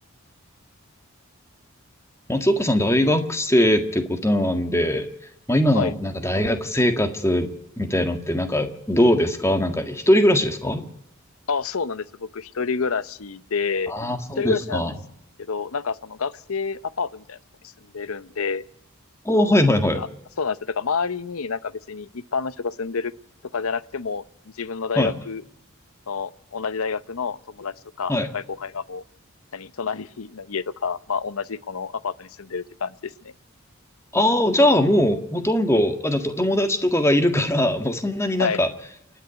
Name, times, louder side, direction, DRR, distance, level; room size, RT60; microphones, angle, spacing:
voice 1, 2.3-5.1 5.5-7.5 7.8-10.8 13.9-14.9 19.2-20.0 25.0-25.2 28.1-28.3 34.1-38.7, left 1 dB, 10° left, 7 dB, 1.6 m, -21 dB
voice 2, 11.5-13.9 14.4-14.8 15.5-17.4 17.9-18.6 20.0-20.1 20.4-23.1 23.5-24.2 24.6-25.4 26.1-29.0 29.5-33.1 38.4-38.6, left 5 dB, 80° left, 17 dB, 0.8 m, -28 dB
28.5 x 10.0 x 9.3 m, 0.83 s
head